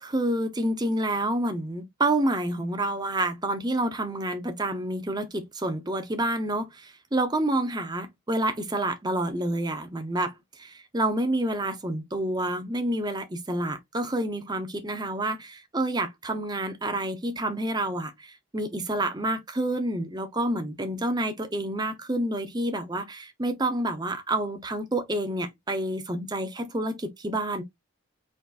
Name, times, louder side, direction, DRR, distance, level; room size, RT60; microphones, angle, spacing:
voice 1, 0.0-27.6, right 1 dB, 20° right, 0.8 m, -28 dB
5.0 x 4.1 x 2.5 m
head